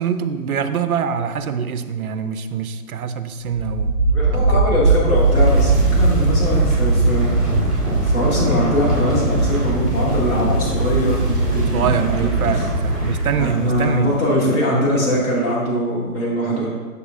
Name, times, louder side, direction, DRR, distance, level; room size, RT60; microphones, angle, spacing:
voice 1, 0.0-4.0 4.3-4.6 11.7-14.2 14.7-15.2, right 7 dB, 65° right, 10 dB, 0.6 m, -24 dB
sound 1, 3.5-14.2, right 2 dB, ahead, 1.8 m, -19 dB
voice 2, 4.0-7.3 8.0-12.2 12.5-12.6 13.4-16.7, equal, 25° left, -7 dB, 1.9 m, -22 dB
6.9 x 6.7 x 2.5 m, 1.5 s
hypercardioid pair, 150°, 47 cm